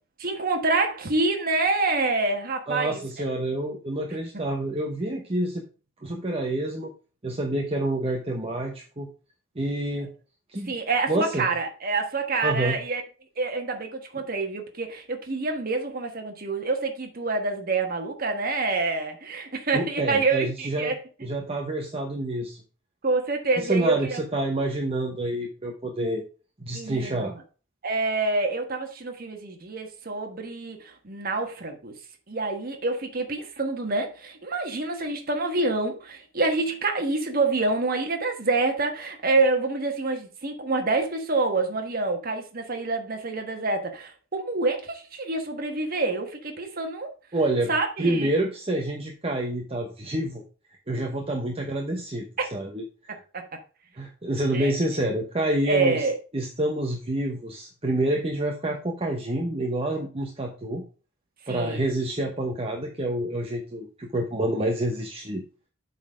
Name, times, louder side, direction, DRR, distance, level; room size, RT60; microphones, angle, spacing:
voice 1, 0.2-3.0 10.7-13.0 13.4-21.0 23.0-24.2 26.7-27.4 27.8-31.9 32.3-47.1 47.7-48.3 52.4-52.5 53.3-53.4 54.5-54.7 55.7-56.2 61.5-61.8, right 3 dB, 45° right, 1.4 m, -27 dB
voice 2, 2.7-5.6 6.0-6.9 7.2-9.1 9.5-10.1 10.5-10.7 11.1-11.5 12.4-12.8 19.7-20.9 21.2-22.6 23.6-26.2 26.6-27.3 47.3-47.7 48.0-50.4 50.9-52.8 53.1-53.2 53.9-56.1 56.3-60.8 61.5-65.4, right 1 dB, 30° right, 1.0 m, -28 dB
8.1 x 4.2 x 5.1 m
head